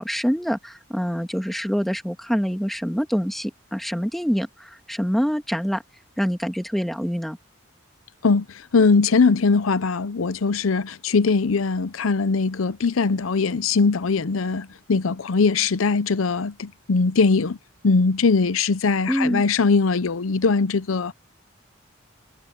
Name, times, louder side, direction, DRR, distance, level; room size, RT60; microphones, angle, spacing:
voice 1, 0.0-5.8 6.2-7.4 19.1-19.4, equal, ahead, 1.7 m, -25 dB
voice 2, 8.2-17.6 17.8-21.1, left 4 dB, 90° left, 0.6 m, -21 dB
head